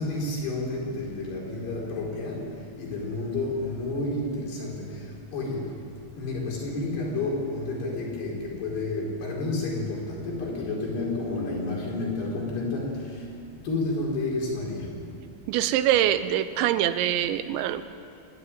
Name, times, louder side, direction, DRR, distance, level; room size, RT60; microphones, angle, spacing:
voice 1, 0.0-5.1 5.3-5.7 6.2-13.2 13.6-14.9, left 2 dB, 65° left, -3 dB, 6.5 m, -30 dB
voice 2, 15.5-17.8, right 12 dB, 85° right, 12 dB, 3.0 m, -24 dB
25.5 x 12.0 x 9.6 m, 2.6 s
omnidirectional pair, 5.2 m